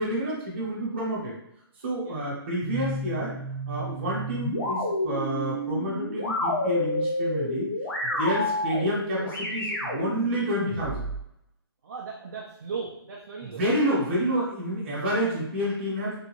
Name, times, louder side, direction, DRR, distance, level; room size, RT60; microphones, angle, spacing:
voice 1, 0.0-1.3 1.8-3.3 3.7-7.7 8.0-11.0 13.5-16.2, equal, 25° right, -5 dB, 1.0 m, -29 dB
sound 1, 2.6-11.2, left 1 dB, 55° left, 1.1 m, -30 dB
voice 2, 11.8-13.7, right 5 dB, 45° right, -3 dB, 0.5 m, -37 dB
3.4 x 2.5 x 3.0 m, 0.77 s
hypercardioid pair, 180°, 13 cm